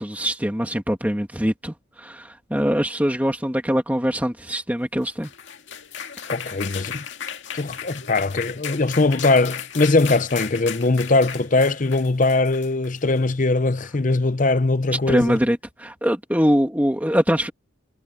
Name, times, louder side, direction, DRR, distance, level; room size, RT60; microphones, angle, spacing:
voice 1, 0.0-5.3 15.1-17.5, equal, 10° right, 2.6 m, -23 dB
sound 1, 5.0-13.3, left 8 dB, 60° left, 2.2 m, -35 dB
voice 2, 6.3-7.0 7.5-15.4, left 3 dB, 40° left, 0.6 m, -21 dB
head